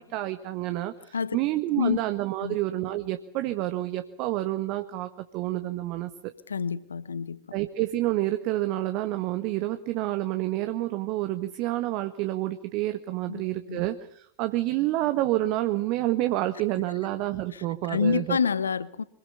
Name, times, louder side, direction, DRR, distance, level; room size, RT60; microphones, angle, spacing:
voice 1, 0.0-6.1 7.5-18.4, right 16 dB, 40° right, 1.5 m, -28 dB
voice 2, 6.5-7.4 13.3-13.4 13.7-13.8 17.5-19.0, left 6 dB, 70° left, 1.1 m, -28 dB
25.5 x 22.0 x 7.1 m
figure-of-eight pair, 90°, 0 cm